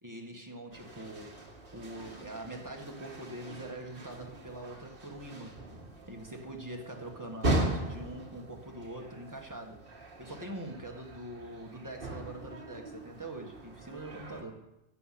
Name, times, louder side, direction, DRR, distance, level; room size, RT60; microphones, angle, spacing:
voice 1, 0.0-1.3 1.7-5.5 6.1-9.8 10.2-14.6, right 1 dB, 15° right, 1 dB, 1.6 m, -43 dB
sound 1, 0.7-14.4, right 1 dB, 60° right, 1.7 m, -39 dB
14.5 x 6.9 x 5.9 m, 0.94 s
omnidirectional pair, 1.1 m